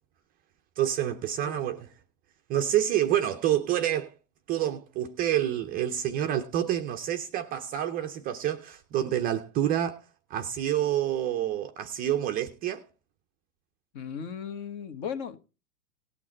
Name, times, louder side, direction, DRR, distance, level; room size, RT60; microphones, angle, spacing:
voice 1, 0.8-1.9 2.5-4.1 4.5-10.0 10.3-12.8, right 11 dB, 20° right, 0.5 m, -28 dB
voice 2, 13.9-15.4, left 7 dB, 45° left, 1.3 m, -36 dB
18.0 x 6.1 x 4.4 m
hypercardioid pair, 130°, 44 cm